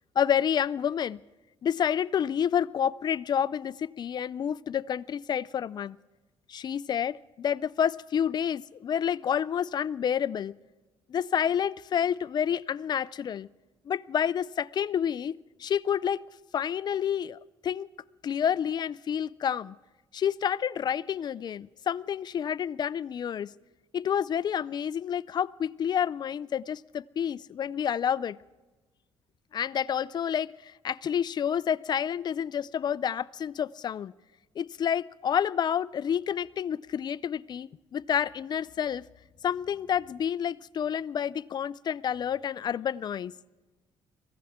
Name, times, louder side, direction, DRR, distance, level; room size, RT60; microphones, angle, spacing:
voice 1, 0.2-1.2 1.6-6.0 6.5-10.5 11.1-13.5 13.9-17.9 18.2-19.8 20.1-23.5 23.9-28.4 29.5-34.1 34.6-39.0 39.4-43.3, left 8 dB, 45° left, 0.5 m, -29 dB
23.5 x 15.5 x 3.7 m
cardioid pair, 105°, 10 cm